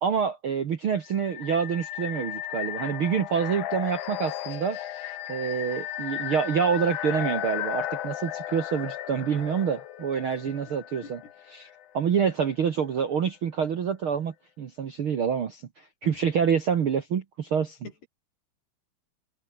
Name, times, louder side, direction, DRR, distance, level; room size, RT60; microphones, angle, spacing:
voice 1, 0.0-4.8 5.3-11.2 11.5-11.7 11.9-17.8, right 7 dB, 60° right, 1.4 m, -27 dB
sound 1, 1.1-11.8, left 12 dB, 65° left, 2.5 m, -35 dB
voice 2, 10.5-10.6 11.0-11.3 16.0-16.2 17.8-18.1, left 5 dB, 85° left, 8.5 m, -45 dB
omnidirectional pair, 4.5 m